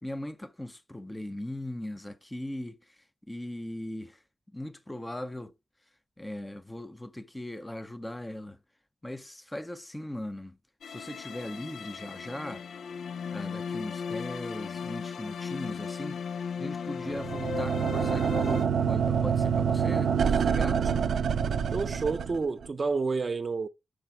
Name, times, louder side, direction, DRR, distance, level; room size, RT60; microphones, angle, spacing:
voice 1, 0.0-2.8 3.3-4.2 4.5-5.5 6.2-8.6 9.0-10.6 10.9-12.7 13.3-16.2 16.6-21.0, left 1 dB, 10° left, 0.6 m, -39 dB
sound 1, 10.8-18.6, left 6 dB, 80° left, 0.5 m, -37 dB
sound 2, 17.0-22.7, right 7 dB, 85° right, 0.5 m, -27 dB
voice 2, 21.7-23.7, right 4 dB, 40° right, 0.6 m, -29 dB
7.6 x 6.4 x 4.5 m
wide cardioid pair, 110°, 0 cm